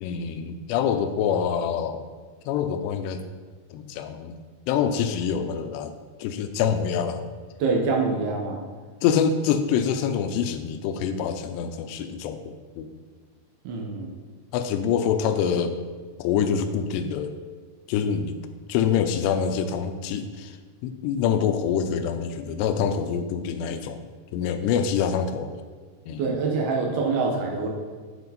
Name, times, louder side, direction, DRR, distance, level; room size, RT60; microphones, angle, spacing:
voice 1, 0.0-2.0 2.5-3.2 3.7-4.4 4.7-5.9 6.2-7.3 9.0-13.0 14.5-15.8 16.2-17.3 17.9-18.4 18.7-20.6 20.8-24.0 24.3-25.6 26.1-26.3, left 7 dB, 85° left, 8 dB, 2.7 m, -25 dB
voice 2, 7.6-8.6 13.6-14.1 26.2-27.7, right 4 dB, 75° right, 0 dB, 2.9 m, -25 dB
10.5 x 4.9 x 4.1 m, 1.5 s
omnidirectional pair, 4.9 m